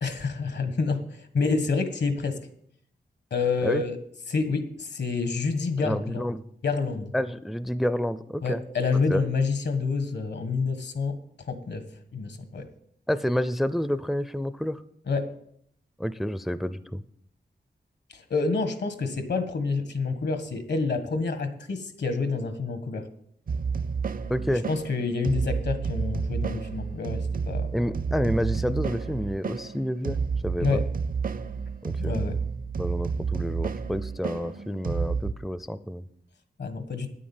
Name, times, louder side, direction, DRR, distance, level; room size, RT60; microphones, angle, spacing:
voice 1, 0.0-2.4 3.3-4.0 4.3-6.3 6.6-7.1 8.4-11.2 11.5-11.8 12.1-12.6 15.1-15.3 18.1-23.0 24.5-27.8 30.6-30.8 32.0-32.4 36.6-37.1, left 4 dB, 75° left, 8 dB, 1.6 m, -28 dB
voice 2, 5.8-6.4 7.1-8.6 9.1-9.2 13.1-14.8 16.0-17.0 24.3-24.6 27.7-30.2 30.4-30.8 31.8-32.2 32.8-36.0, equal, ahead, 14 dB, 0.4 m, -29 dB
sound 1, 23.5-35.3, right 5 dB, 55° right, 0.6 m, -30 dB
9.9 x 8.6 x 7.3 m, 0.69 s
wide cardioid pair, 125°, 18 cm